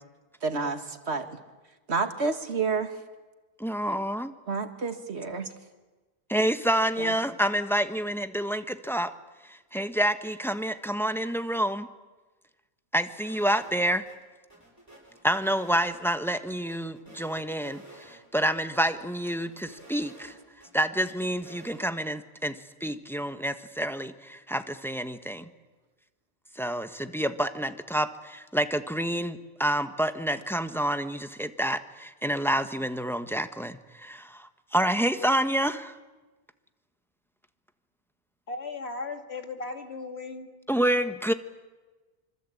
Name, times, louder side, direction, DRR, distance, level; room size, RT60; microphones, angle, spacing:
voice 1, 0.4-1.3 1.9-3.0 4.5-5.5 7.0-7.1, right 4 dB, 85° right, 8 dB, 2.2 m, -29 dB
voice 2, 3.6-4.3 6.3-9.1 9.5-11.9 12.9-14.0 15.2-20.3 20.7-25.5 26.6-36.0 40.7-41.3, right 1 dB, ahead, 9 dB, 1.2 m, -28 dB
sound 1, 13.2-13.8 14.0-14.2 14.5-16.3 16.7-18.2 18.4-18.5 18.9-20.7 21.0-21.8, right 2 dB, 15° right, 7.7 m, -51 dB
voice 3, 38.5-40.5, left 3 dB, 75° left, 6 dB, 2.6 m, -36 dB
26.0 x 25.5 x 8.6 m, 1.2 s
omnidirectional pair, 1.1 m